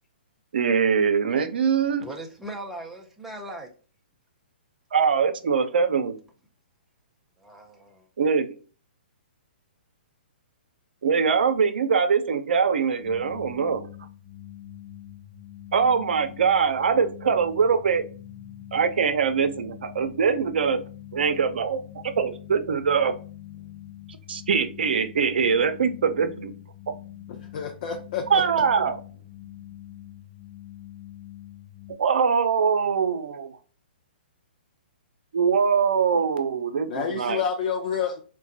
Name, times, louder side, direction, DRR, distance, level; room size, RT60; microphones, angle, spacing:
voice 1, 0.5-2.1 4.9-6.2 8.2-8.6 11.0-13.9 15.7-18.0 18.7-20.8 21.1-21.8 22.2-23.1 24.3-26.5 28.3-29.0 32.0-33.5 35.3-37.4, right 6 dB, 70° right, 0.5 m, -23 dB
voice 2, 2.0-3.7 7.4-8.1, right 1 dB, 5° right, 0.5 m, -39 dB
sound 1, 13.0-31.9, left 12 dB, 25° left, 1.2 m, -44 dB
voice 3, 27.3-28.4 36.9-38.2, left 7 dB, 50° left, 0.5 m, -29 dB
3.8 x 2.2 x 2.7 m
hypercardioid pair, 135°, 6 cm